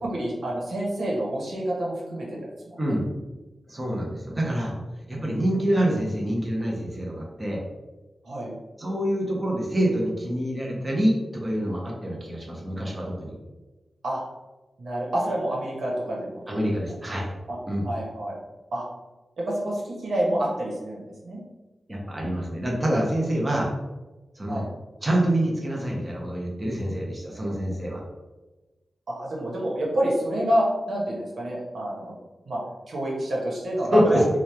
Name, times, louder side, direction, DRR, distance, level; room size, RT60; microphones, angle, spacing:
voice 1, 0.0-2.4 2.8-3.0 8.2-8.5 14.0-14.2 14.8-16.4 16.9-17.0 17.5-17.6 17.8-18.4 18.7-18.8 19.4-21.4 24.5-24.7 29.1-32.2 32.4-32.6 32.9-34.2, right 1 dB, 85° right, -4 dB, 1.1 m, -28 dB
voice 2, 2.8-3.1 3.7-4.8 5.1-7.6 8.8-13.3 16.5-17.3 17.7-17.8 21.9-23.7 24.4-24.6 25.0-28.0 33.9-34.3, right 1 dB, 20° right, -3 dB, 0.9 m, -26 dB
3.1 x 2.4 x 4.3 m, 1.1 s
wide cardioid pair, 100°, 0 cm